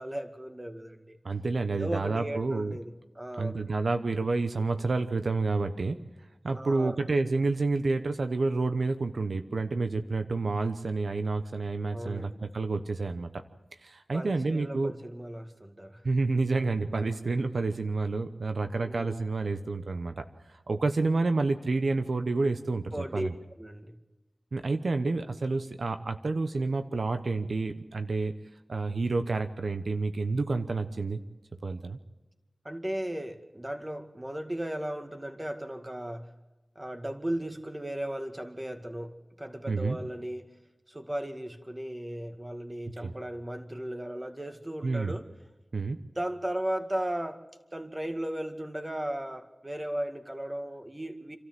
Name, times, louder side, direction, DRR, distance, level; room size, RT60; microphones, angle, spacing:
voice 1, 0.0-1.2 1.7-3.6 6.5-7.0 11.9-12.4 14.1-16.0 18.8-19.2 22.9-23.3 23.6-24.0 32.6-36.3 36.8-40.5 40.9-45.3 46.1-47.4 47.7-51.4, right 1 dB, 25° right, 6 dB, 2.1 m, -36 dB
voice 2, 1.2-2.8 3.4-6.0 6.4-13.3 13.8-14.9 16.0-23.3 24.5-28.3 28.7-31.2 31.6-32.0 39.7-40.0 43.0-43.1 44.8-45.1 45.7-46.0, right 3 dB, 85° right, 8 dB, 0.9 m, -29 dB
27.5 x 13.0 x 7.7 m, 1.1 s
wide cardioid pair, 45°, 0 cm